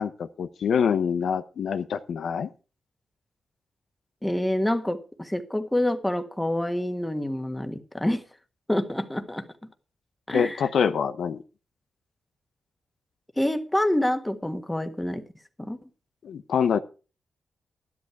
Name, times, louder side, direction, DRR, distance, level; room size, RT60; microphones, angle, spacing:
voice 1, 0.0-2.5 10.3-11.4 16.2-16.8, left 7 dB, 80° left, 0.8 m, -25 dB
voice 2, 4.2-8.2 8.7-9.5 10.3-10.6 13.4-15.2 15.6-15.8, left 1 dB, 10° left, 1.6 m, -27 dB
12.0 x 11.5 x 4.7 m
cardioid pair, 75°, 0 cm